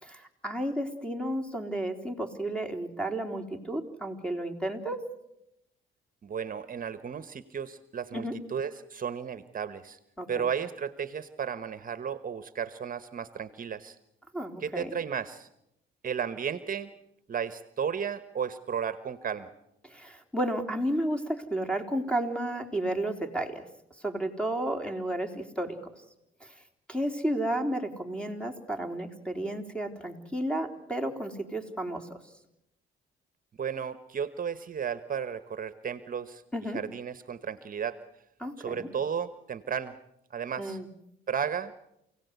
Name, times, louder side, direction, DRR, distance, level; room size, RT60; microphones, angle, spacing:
voice 1, 0.0-5.0 8.1-8.4 10.2-10.5 14.3-14.9 19.8-23.7 24.0-25.8 26.4-26.5 26.9-32.2 36.5-36.8 38.4-38.9 40.6-40.9, right 1 dB, 5° left, 5 dB, 3.6 m, -32 dB
voice 2, 6.2-10.0 10.3-14.0 14.6-15.5 16.0-16.9 17.3-19.5 33.6-36.4 36.7-38.0 38.6-39.9 40.3-40.8 41.3-41.7, right 7 dB, 45° right, 13 dB, 1.2 m, -34 dB
28.5 x 17.5 x 8.2 m, 0.83 s
cardioid pair, 90°, 20 cm